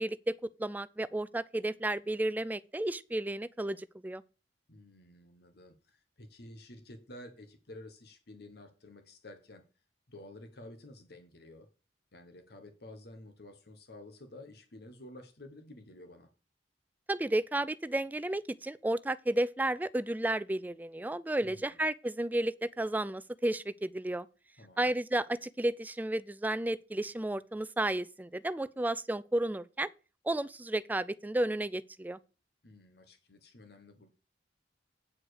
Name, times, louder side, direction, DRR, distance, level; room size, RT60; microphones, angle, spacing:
voice 1, 0.0-4.2 17.1-24.3 24.8-29.9 30.3-32.2, right 1 dB, 10° right, 0.3 m, -32 dB
voice 2, 4.7-9.6 10.1-11.7 12.1-16.3 21.4-21.8 24.6-24.9 32.6-34.1, left 1 dB, 60° left, 1.2 m, -51 dB
8.7 x 4.9 x 6.4 m
head